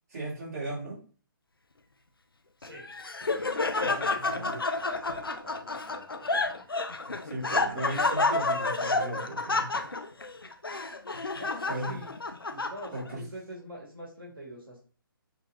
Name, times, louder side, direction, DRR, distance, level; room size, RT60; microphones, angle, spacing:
voice 1, 0.1-1.0 3.8-4.6 7.1-9.7 11.7-12.0 12.9-13.2, right 1 dB, 40° right, -6 dB, 2.4 m, -37 dB
Laughter, 2.6-13.1, left 3 dB, 75° left, 0.5 m, -30 dB
voice 2, 3.2-6.7 11.3-12.1 12.5-14.8, equal, 70° right, -5 dB, 1.9 m, -46 dB
6.1 x 2.9 x 2.8 m, 0.40 s
figure-of-eight pair, 135°, 12 cm